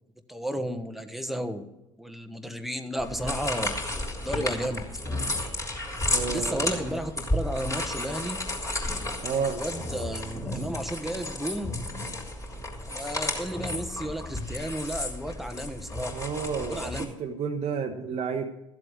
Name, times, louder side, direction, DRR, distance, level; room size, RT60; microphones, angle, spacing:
voice 1, 0.3-1.7 2.0-3.8 4.2-4.8 6.3-8.4 9.3-11.7 12.8-16.2 16.7-17.1, equal, ahead, 6 dB, 1.4 m, -33 dB
sound 1, 3.0-17.0, left 2 dB, 20° left, 3.7 m, -32 dB
voice 2, 6.1-6.7 9.2-9.6 16.1-18.5, right 6 dB, 40° right, 3 dB, 1.1 m, -31 dB
14.5 x 7.7 x 6.4 m, 0.94 s
figure-of-eight pair, 65°, 16 cm